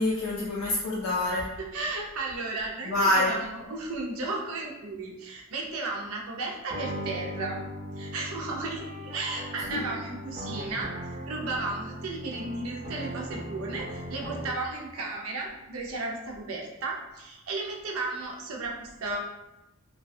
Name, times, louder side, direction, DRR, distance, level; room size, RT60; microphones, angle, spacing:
voice 1, 0.0-1.5 2.9-3.3 9.7-9.8, left 1 dB, 90° left, -5 dB, 0.4 m, -26 dB
voice 2, 1.6-7.6 8.0-10.9 11.3-19.2, right 3 dB, 80° right, 0 dB, 0.5 m, -34 dB
sound 1, 6.7-14.7, equal, 30° right, 0.4 m, -38 dB
2.4 x 2.2 x 2.5 m, 0.95 s
head